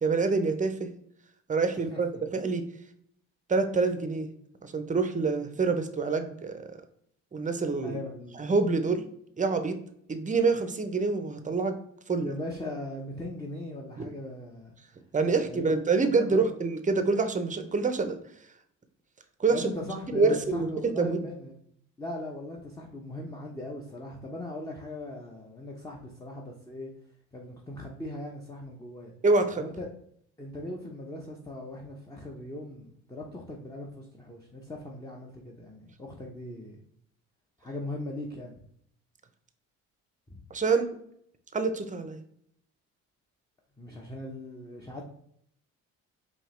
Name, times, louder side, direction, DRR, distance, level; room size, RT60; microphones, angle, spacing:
voice 1, 0.0-0.9 1.5-2.6 3.5-4.3 4.6-6.8 7.3-8.0 8.4-9.1 9.4-9.8 10.1-11.8 12.1-12.3 14.0-14.1 15.1-18.2 19.4-19.7 20.1-21.2 29.2-29.6 40.5-41.0 41.5-42.2, right 4 dB, 20° right, 8 dB, 0.7 m, -26 dB
voice 2, 7.8-8.4 12.2-14.7 15.5-16.4 19.5-21.6 22.0-26.9 27.3-29.1 29.6-29.9 30.4-36.8 37.6-38.6 40.3-40.4 43.8-45.0, left 1 dB, 10° left, -1 dB, 0.8 m, -39 dB
4.7 x 2.9 x 3.2 m, 0.69 s
supercardioid pair, 65°, 34 cm